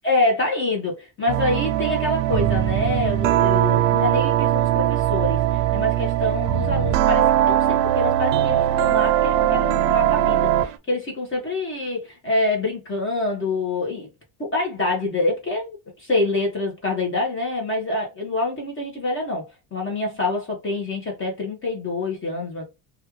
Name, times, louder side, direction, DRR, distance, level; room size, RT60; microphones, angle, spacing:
voice 1, 0.0-14.1 14.4-19.4 19.7-22.6, left 2 dB, 25° left, 1.2 m, -26 dB
sound 1, 1.3-10.8, right 12 dB, 80° right, 0.7 m, -20 dB
3.1 x 2.5 x 3.0 m
cardioid pair, 125°, 46 cm